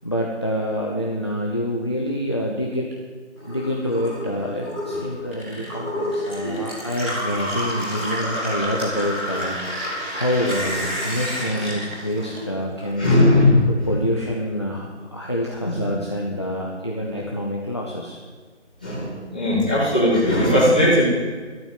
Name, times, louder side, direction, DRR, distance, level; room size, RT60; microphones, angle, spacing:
voice 1, 0.0-2.9 3.5-13.4 13.7-18.2, equal, 25° left, -2 dB, 1.0 m, -27 dB
Gurgling / Water tap faucet / Sink (filling or washing), 3.4-12.9 13.2-14.1, equal, 10° right, 2.8 m, -29 dB
voice 2, 13.0-13.6 15.6-15.8 18.8-21.0, left 1 dB, 5° left, -10 dB, 1.5 m, -18 dB
14.5 x 12.5 x 7.6 m, 1.5 s
figure-of-eight pair, 175°, 36 cm